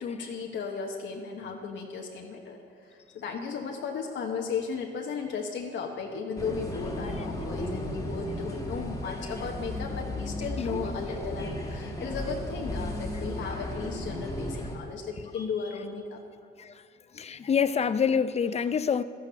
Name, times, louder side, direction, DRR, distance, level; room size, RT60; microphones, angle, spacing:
voice 1, 0.0-16.2, left 5 dB, 70° left, 1.2 m, -35 dB
sound 1, 6.4-14.8, left 1 dB, 15° left, 1.8 m, -35 dB
voice 2, 17.1-19.0, left 7 dB, 30° left, 0.5 m, -26 dB
12.0 x 10.5 x 5.7 m
cardioid pair, 90°, 20 cm